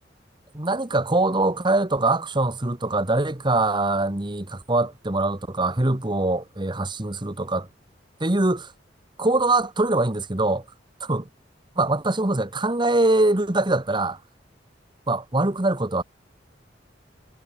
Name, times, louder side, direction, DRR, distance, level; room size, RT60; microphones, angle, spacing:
voice 1, 0.5-7.7 8.2-8.7 9.2-10.6 11.1-11.2 11.8-14.2 15.1-16.0, right 2 dB, 25° right, 1.4 m, -23 dB
head